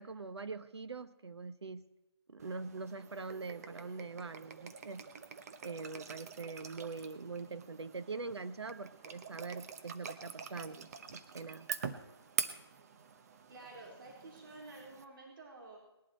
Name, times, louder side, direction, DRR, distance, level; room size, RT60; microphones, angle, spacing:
voice 1, 0.0-1.8 2.3-5.0 5.6-11.7, right 4 dB, 75° right, 11 dB, 1.1 m, -43 dB
sound 1, 2.4-15.0, right 6 dB, 35° right, 1.0 m, -45 dB
voice 2, 13.5-15.8, right 2 dB, 55° right, -2 dB, 3.9 m, -51 dB
20.0 x 11.5 x 4.3 m, 0.97 s
figure-of-eight pair, 155°, 14 cm